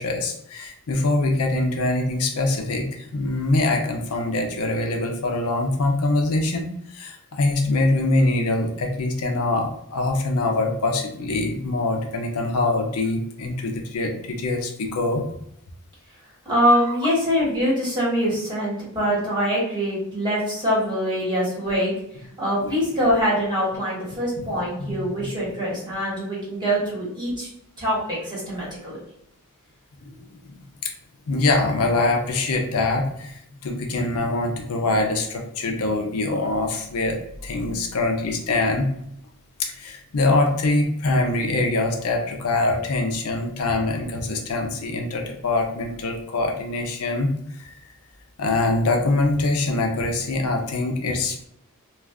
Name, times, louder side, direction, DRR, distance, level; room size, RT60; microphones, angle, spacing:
voice 1, 0.0-15.2 22.6-22.7 24.8-24.9 30.1-30.2 30.4-30.5 30.8-30.9 31.3-38.9 39.6-47.3 47.6-47.7 48.4-51.4, left 2 dB, 70° left, 3 dB, 0.5 m, -24 dB
voice 2, 16.4-21.9 22.4-27.5 27.8-29.0, equal, 20° right, -7 dB, 1.3 m, -24 dB
2.4 x 2.3 x 3.4 m, 0.74 s
head